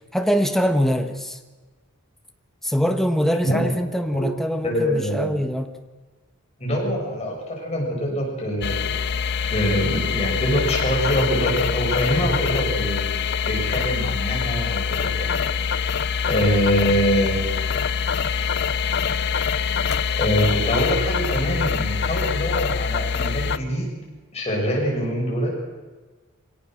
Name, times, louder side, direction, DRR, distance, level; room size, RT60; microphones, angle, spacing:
voice 1, 0.1-1.4 2.6-5.8, equal, ahead, 6 dB, 1.3 m, -23 dB
voice 2, 4.6-5.4 6.6-9.0 9.5-15.5 16.3-17.7 20.1-24.0 24.3-25.6, equal, 30° left, -2 dB, 6.8 m, -24 dB
sound 1, 8.6-23.6, left 6 dB, 50° left, 0.7 m, -24 dB
24.5 x 17.5 x 6.4 m, 1.3 s
head